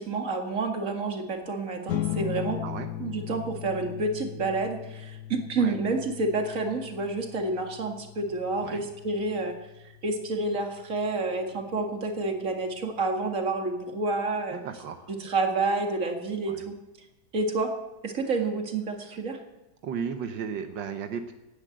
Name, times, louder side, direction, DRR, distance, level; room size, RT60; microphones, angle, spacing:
voice 1, 0.0-2.6 3.0-9.5 10.0-14.6 15.2-16.7 17.3-17.7 18.0-19.4, right 3 dB, 45° right, 4 dB, 2.3 m, -29 dB
sound 1, 1.9-12.6, left 12 dB, 70° left, 1.3 m, -38 dB
voice 2, 14.5-15.1 16.5-16.6 19.8-21.3, right 7 dB, 85° right, 7 dB, 1.7 m, -35 dB
18.0 x 10.0 x 7.9 m, 0.99 s
omnidirectional pair, 1.9 m